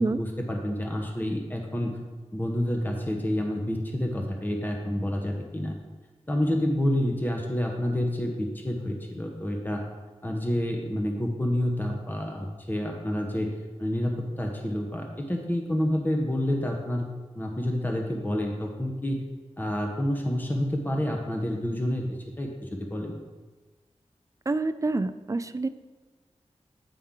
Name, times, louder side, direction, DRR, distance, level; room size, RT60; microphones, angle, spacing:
voice 1, 0.0-2.0 2.3-5.7 6.3-9.8 10.2-17.1 17.3-19.2 19.6-23.2, left 1 dB, 15° left, 1 dB, 0.9 m, -28 dB
voice 2, 24.5-25.7, right 3 dB, 30° right, 12 dB, 0.3 m, -27 dB
8.8 x 5.4 x 3.7 m, 1.3 s
wide cardioid pair, 65°, 12 cm